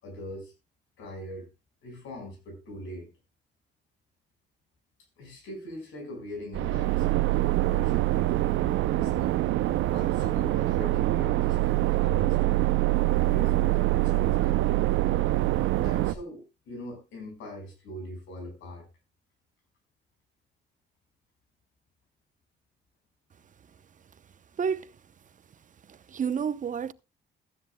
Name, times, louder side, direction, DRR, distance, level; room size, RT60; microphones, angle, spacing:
voice 1, 0.0-0.5 1.0-1.5 1.8-3.1 5.2-7.3 7.6-9.4 9.9-12.7 13.2-14.7 15.8-18.9, left 1 dB, 85° left, 5.3 m, -41 dB
sound 1, 6.5-16.1, right 16 dB, 85° right, 0.6 m, -25 dB
voice 2, 24.6-24.9 25.9-26.9, right 7 dB, 40° right, 0.7 m, -30 dB
15.0 x 13.0 x 2.2 m
cardioid pair, 90°, 20 cm